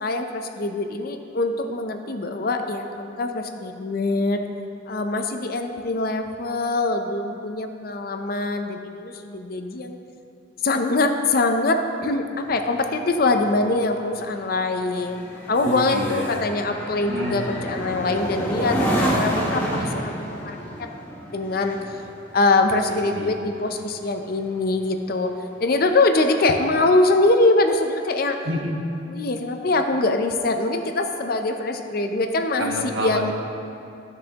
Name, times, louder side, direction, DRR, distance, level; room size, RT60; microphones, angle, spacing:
voice 1, 0.0-4.4 4.9-10.0 10.6-18.8 19.1-20.9 21.3-21.8 22.3-25.3 25.6-28.4 29.1-33.3, left 2 dB, 50° left, 6 dB, 0.6 m, -23 dB
sound 1, 12.4-24.1 24.5-24.8, equal, 10° left, 1.2 m, -29 dB
voice 2, 15.6-16.3 17.1-17.4 23.2-23.3 28.4-28.8 32.6-33.3, right 1 dB, 75° right, 0 dB, 1.1 m, -28 dB
12.5 x 6.9 x 2.9 m, 2.6 s
head